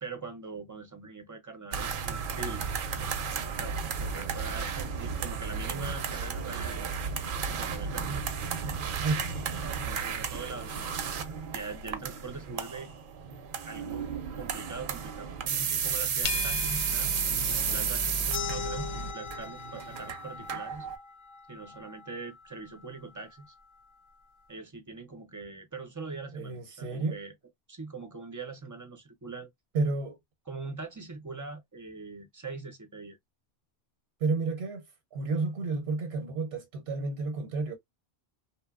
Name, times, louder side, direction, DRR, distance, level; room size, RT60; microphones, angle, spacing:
voice 1, 0.0-2.7 3.6-6.9 7.4-8.1 9.8-10.9 11.5-12.9 13.6-14.1 14.3-15.3 15.7-20.9 21.5-23.5 24.5-27.3 27.7-29.5 30.5-33.2, right 4 dB, 30° right, 0.3 m, -42 dB
sound 1, 1.7-21.0, right 6 dB, 60° right, 0.6 m, -33 dB
voice 2, 9.0-9.5 10.5-10.7 26.3-27.2 29.7-30.2 34.2-37.8, right 3 dB, 85° right, 0.9 m, -31 dB
sound 2, 16.2-19.1, left 2 dB, 70° left, 0.7 m, -35 dB
sound 3, 18.3-23.5, left 5 dB, 50° left, 0.3 m, -41 dB
2.8 x 2.1 x 2.2 m
omnidirectional pair, 1.0 m